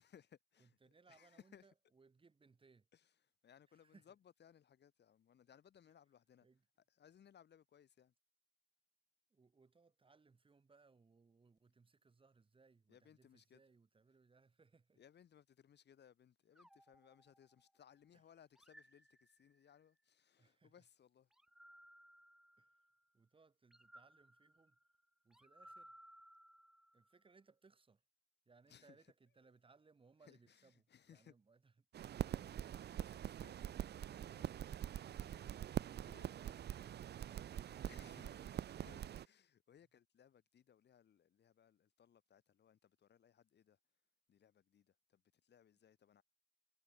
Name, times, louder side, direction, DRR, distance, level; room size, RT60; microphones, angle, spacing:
voice 1, 0.0-1.7 2.9-6.5 6.9-8.1 12.9-13.6 15.0-21.3 28.7-29.1 29.4-29.5 30.2-31.3 32.9-34.7 35.1-35.5 36.0-36.3 37.8-38.5 38.8-43.8 44.3-46.2, left 9 dB, 75° left, 4.5 m, -66 dB
voice 2, 0.6-2.9 3.7-4.1 6.4-6.6 9.3-15.0 18.1-18.2 20.4-20.7 22.6-22.9 23.1-24.8 25.2-25.9 26.9-28.0 28.4-32.9, right 4 dB, 30° right, 5.1 m, -69 dB
sound 1, 16.5-17.9 18.5-19.8 21.3-23.0 23.7-27.2, equal, 5° right, 0.9 m, -64 dB
sound 2, 31.9-39.3, right 10 dB, 70° right, 0.6 m, -44 dB
wide cardioid pair, 155°, 18 cm